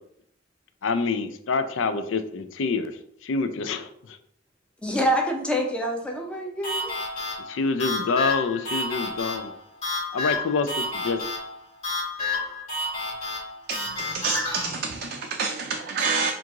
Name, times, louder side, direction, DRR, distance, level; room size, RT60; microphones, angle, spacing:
voice 1, 0.8-4.2 7.5-9.5 10.1-11.2, left 4 dB, 85° left, 0.4 m, -27 dB
voice 2, 4.8-6.9, equal, 5° left, 0.7 m, -26 dB
sound 1, 6.6-14.6, left 2 dB, 35° left, 1.4 m, -30 dB
voice 3, 13.7-16.3, right 4 dB, 50° right, 0.4 m, -28 dB
4.5 x 2.5 x 3.6 m
head